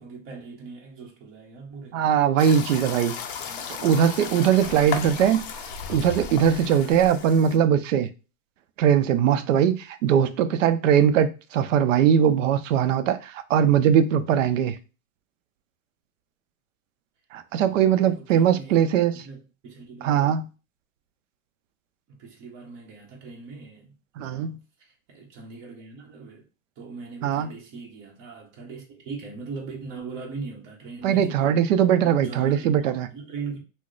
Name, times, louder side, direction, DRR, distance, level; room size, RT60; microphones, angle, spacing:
voice 1, 0.0-2.0 3.3-5.4 17.6-18.9 19.2-20.5 22.1-24.5 24.8-26.4 26.8-31.6 32.0-33.6, right 4 dB, 30° right, 0.9 m, -40 dB
voice 2, 1.9-3.2 3.8-5.4 5.9-8.1 8.8-14.8 17.3-19.2 20.0-20.5 24.2-24.5 27.2-27.5 31.0-33.1, right 9 dB, 65° right, 0.6 m, -21 dB
sound 1, 2.4-7.6, left 6 dB, 45° left, 0.5 m, -35 dB
2.9 x 2.1 x 3.8 m
supercardioid pair, 155°, 41 cm